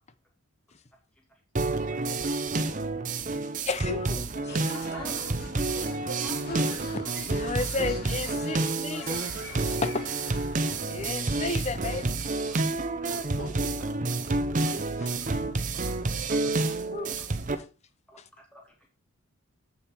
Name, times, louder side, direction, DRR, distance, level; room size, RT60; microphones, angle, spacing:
sound 1, 1.6-17.6, right 3 dB, 35° right, 0.6 m, -29 dB
voice 1, 3.6-4.9 6.5-6.7 6.9-9.3 9.6-10.0 10.9-12.1 15.0-15.1 16.9-17.1, left 3 dB, 30° left, 0.6 m, -33 dB
sound 2, 4.5-11.1, left 2 dB, 45° left, 2.0 m, -43 dB
voice 2, 4.8-5.5 8.6-9.0 12.3-13.2 14.0-15.2 15.7-16.8 18.1-18.9, equal, 5° left, 2.5 m, -52 dB
voice 3, 6.1-6.8 13.0-13.7, right 1 dB, 75° left, 4.0 m, -43 dB
7.9 x 6.6 x 4.4 m
head